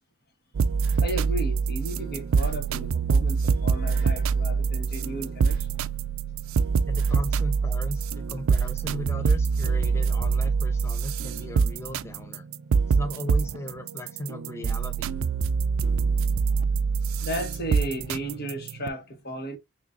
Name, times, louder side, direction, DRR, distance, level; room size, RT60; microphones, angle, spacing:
sound 1, 0.5-18.9, right 5 dB, 70° right, 0.4 m, -25 dB
voice 1, 1.0-5.7 17.2-19.6, right 1 dB, 45° left, 1.7 m, -34 dB
voice 2, 6.9-12.4 12.9-15.2, left 1 dB, 10° left, 0.3 m, -37 dB
6.2 x 3.0 x 2.7 m
head